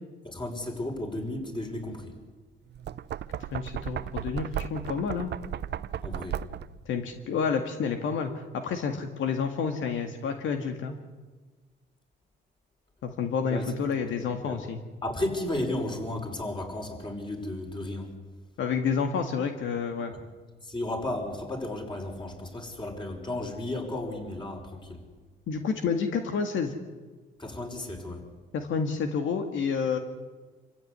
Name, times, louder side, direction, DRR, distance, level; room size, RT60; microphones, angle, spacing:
voice 1, 0.2-2.1 6.0-6.4 13.5-13.6 14.3-14.6 15.0-18.1 20.6-25.0 27.4-28.3, left 1 dB, 25° left, 2 dB, 5.9 m, -34 dB
Knock, 2.7-6.8, right 10 dB, 60° right, 0.7 m, -35 dB
voice 2, 3.5-5.3 6.9-11.0 13.0-14.8 18.6-20.1 25.5-26.7 28.5-30.0, left 6 dB, 75° left, 5 dB, 2.0 m, -29 dB
26.5 x 15.5 x 9.7 m, 1.4 s
cardioid pair, 90°, 20 cm